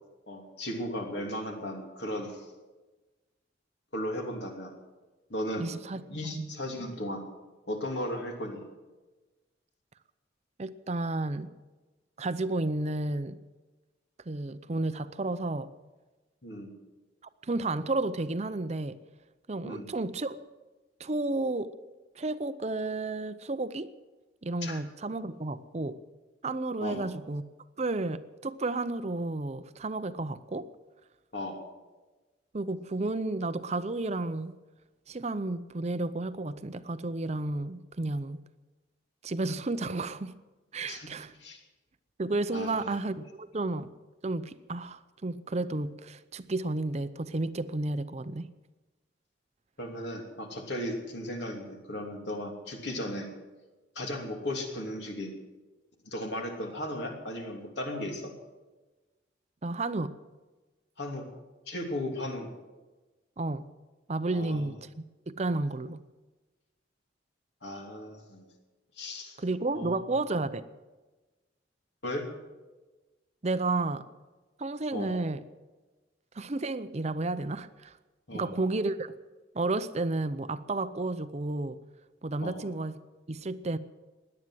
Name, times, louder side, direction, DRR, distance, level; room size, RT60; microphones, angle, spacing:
voice 1, 0.3-2.5 3.9-4.7 5.3-5.7 6.1-7.2 7.7-8.6 16.4-16.7 19.6-19.9 24.6-24.8 26.8-27.1 31.3-31.6 40.9-41.1 41.4-41.6 42.5-43.0 49.8-53.3 53.9-55.4 56.0-58.3 61.0-61.3 61.7-62.5 64.3-64.7 67.6-68.5 69.0-69.4 69.7-69.9 72.0-72.3 74.9-75.1 78.3-78.6 82.4-82.6, left 1 dB, 65° left, 2 dB, 3.0 m, -36 dB
voice 2, 5.6-6.0 6.3-6.4 10.6-11.5 12.2-13.4 14.3-15.7 17.4-19.0 19.5-20.4 21.0-21.7 22.2-23.9 24.4-26.0 26.4-27.4 27.8-30.7 32.5-34.5 35.1-38.4 39.2-40.3 40.7-41.3 42.2-43.9 44.2-48.5 59.6-60.1 63.4-63.7 64.1-66.0 69.4-70.6 73.4-74.0 74.6-75.4 76.3-78.0 78.3-79.1 79.5-81.8 82.2-83.0 83.3-83.8, right 2 dB, 35° right, 13 dB, 0.6 m, -32 dB
17.5 x 11.0 x 7.7 m, 1.2 s
head